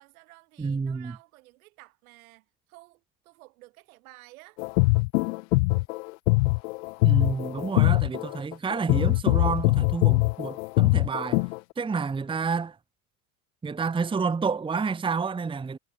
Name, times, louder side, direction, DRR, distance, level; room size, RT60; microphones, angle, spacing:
voice 1, 0.0-4.6, right 21 dB, 80° right, 5.7 m, -53 dB
voice 2, 0.6-1.1 7.0-11.4 11.8-12.8 13.6-15.8, right 5 dB, 10° right, 1.0 m, -29 dB
sound 1, 4.6-11.6, left 26 dB, 80° left, 0.5 m, -23 dB
supercardioid pair, 115°, 41 cm